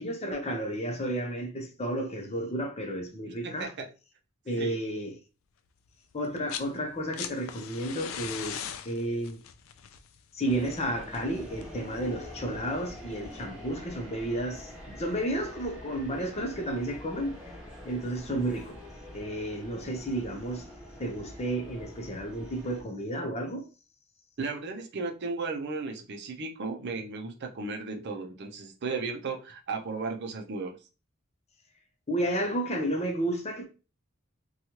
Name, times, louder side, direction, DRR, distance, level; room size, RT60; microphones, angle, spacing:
voice 1, 0.0-3.7 4.5-5.1 6.1-9.4 10.3-17.5 17.8-18.8 19.1-20.7 21.0-23.6 32.1-33.7, right 1 dB, 30° left, 0.6 m, -32 dB
voice 2, 3.4-3.9 4.6-4.7 24.4-30.8, right 4 dB, 55° right, 0.5 m, -35 dB
sound 1, 6.2-6.7 7.0-11.9 13.1-13.2, left 9 dB, 70° left, 0.3 m, -40 dB
sound 2, 10.4-22.8, left 1 dB, 5° right, 1.1 m, -45 dB
3.0 x 2.3 x 2.8 m
head